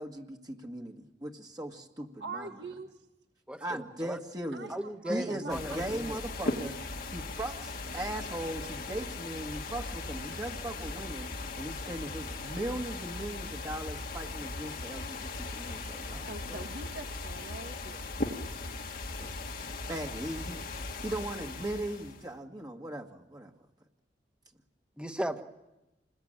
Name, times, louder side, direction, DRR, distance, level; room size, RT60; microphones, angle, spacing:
voice 1, 0.0-2.5 3.6-4.7 5.1-6.7 7.1-11.3 11.6-16.7 19.6-20.6 21.0-23.5, right 1 dB, 20° right, 1 dB, 1.8 m, -38 dB
voice 2, 2.2-2.9 4.5-5.5 5.9-6.2 16.3-18.1, right 3 dB, 70° right, 5 dB, 1.6 m, -43 dB
voice 3, 3.5-4.2 4.7-6.2 25.0-25.4, equal, 5° right, 7 dB, 1.5 m, -36 dB
sound 1, 5.5-22.3, left 3 dB, 55° left, 1.8 m, -38 dB
27.5 x 21.0 x 9.0 m, 0.99 s
head